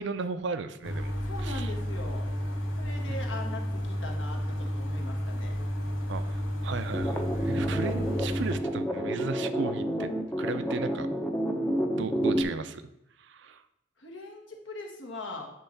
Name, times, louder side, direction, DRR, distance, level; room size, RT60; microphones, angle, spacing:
voice 1, 0.0-1.1 1.4-1.7 3.1-3.2 6.1-10.1 10.4-11.1 12.0-12.8 13.2-13.6, right 4 dB, 65° right, 11 dB, 0.5 m, -35 dB
sound 1, 0.8-8.6, equal, 90° left, 1.4 m, -32 dB
voice 2, 1.2-2.3 2.8-5.5 12.0-12.2 14.0-15.5, left 2 dB, 70° left, 2 dB, 1.4 m, -41 dB
sound 2, 6.9-12.4, equal, 10° left, 0.6 m, -29 dB
9.0 x 3.1 x 5.7 m, 0.84 s
head